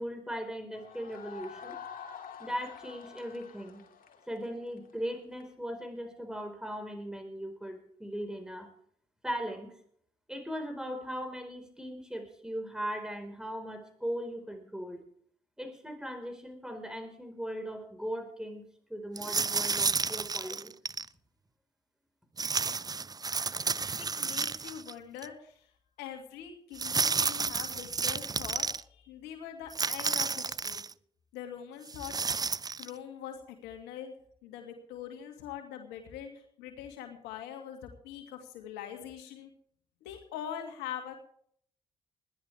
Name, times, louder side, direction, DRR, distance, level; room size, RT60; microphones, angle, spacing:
voice 1, 0.0-1.8 2.4-3.8 4.3-8.7 9.2-9.7 10.3-15.0 15.6-18.6 18.9-20.7, equal, 5° right, 6 dB, 4.7 m, -38 dB
sound 1, 0.7-5.5, left 7 dB, 50° left, 2.7 m, -47 dB
sound 2, 19.2-21.1 22.4-24.9 25.2-25.3 26.8-28.8 29.7-30.9 31.9-32.9, right 4 dB, 20° right, 0.5 m, -31 dB
voice 2, 24.0-25.7 26.0-30.8 31.3-34.1 34.4-39.5 40.0-41.1, left 9 dB, 75° left, 4 dB, 2.3 m, -43 dB
21.0 x 13.0 x 3.5 m, 0.62 s
figure-of-eight pair, 40°, 18 cm